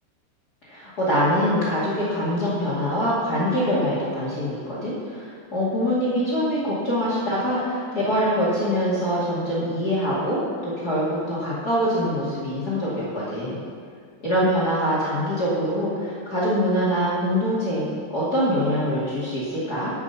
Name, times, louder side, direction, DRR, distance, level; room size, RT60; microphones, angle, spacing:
voice 1, 0.6-5.2 5.5-10.4 10.6-13.6 14.2-17.8 18.1-19.9, equal, 45° left, -8 dB, 1.2 m, -24 dB
15.0 x 5.9 x 5.7 m, 2.1 s
omnidirectional pair, 5.6 m